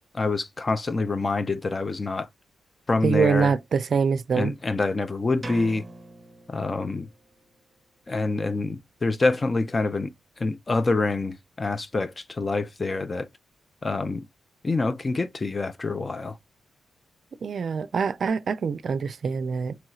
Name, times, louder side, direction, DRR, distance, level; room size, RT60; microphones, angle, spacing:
voice 1, 0.1-2.3 2.9-3.5 4.3-5.8 6.5-7.1 8.1-13.3 13.8-14.3 14.6-16.4, left 3 dB, 30° left, 0.4 m, -26 dB
voice 2, 3.0-4.5 17.4-19.8, right 6 dB, 60° right, 0.4 m, -24 dB
sound 1, 5.4-7.3, right 2 dB, 20° right, 0.7 m, -42 dB
3.0 x 2.9 x 2.3 m
cardioid pair, 80°, 0 cm